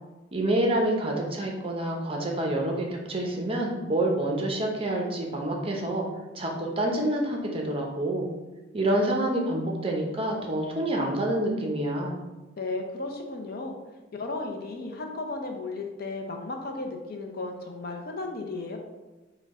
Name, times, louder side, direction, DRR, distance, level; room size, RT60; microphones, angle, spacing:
voice 1, 0.3-6.1 6.3-8.3 8.7-12.1, right 1 dB, 30° right, 0 dB, 0.7 m, -27 dB
voice 2, 12.6-13.8 14.1-18.8, left 3 dB, 50° left, 3 dB, 0.6 m, -34 dB
4.5 x 2.3 x 4.8 m, 1.2 s
head